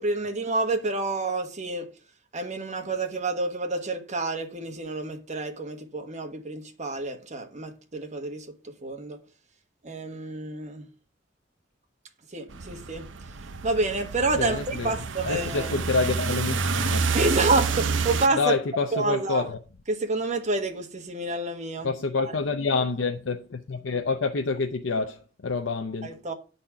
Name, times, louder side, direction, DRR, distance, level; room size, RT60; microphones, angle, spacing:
voice 1, 0.0-1.9 2.3-8.5 8.8-9.2 9.8-10.9 12.3-13.1 13.6-15.7 17.1-18.5 18.9-19.5 19.9-21.9 26.0-26.3, right 2 dB, 40° right, 1.2 m, -28 dB
sound 1, 12.5-18.3, right 5 dB, 70° right, 0.6 m, -29 dB
voice 2, 14.3-14.9 15.2-17.1 18.3-19.6 21.8-26.2, left 4 dB, 75° left, 0.6 m, -27 dB
8.6 x 4.2 x 5.7 m
head